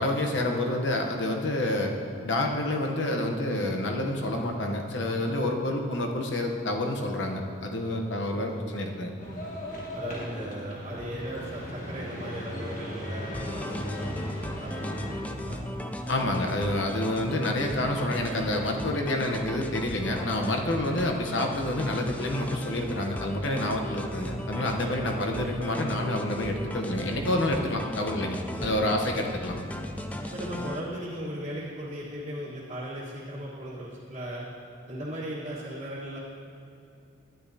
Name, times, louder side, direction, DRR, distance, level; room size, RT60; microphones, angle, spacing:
voice 1, 0.0-1.9 2.2-9.1 16.1-29.6, left 1 dB, 70° left, 2 dB, 0.9 m, -28 dB
voice 2, 8.3-8.7 9.9-14.3 14.6-15.6 28.6-29.0 30.2-34.4 34.9-36.2, equal, 35° right, -9 dB, 1.4 m, -37 dB
sound 1, 9.2-15.2, equal, 40° left, 1.4 m, -37 dB
sound 2, 13.3-30.8, left 1 dB, 10° left, 0.3 m, -37 dB
12.0 x 10.5 x 2.8 m, 2.6 s
head